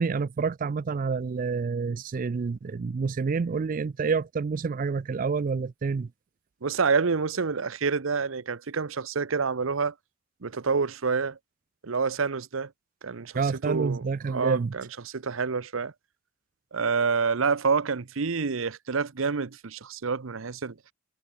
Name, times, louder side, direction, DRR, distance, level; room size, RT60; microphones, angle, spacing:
voice 1, 0.0-6.1 13.3-14.7, right 5 dB, 40° right, 0.4 m, -28 dB
voice 2, 6.6-9.9 10.4-11.4 11.8-12.7 13.0-15.9 16.7-20.7, right 5 dB, 90° right, 0.8 m, -28 dB
head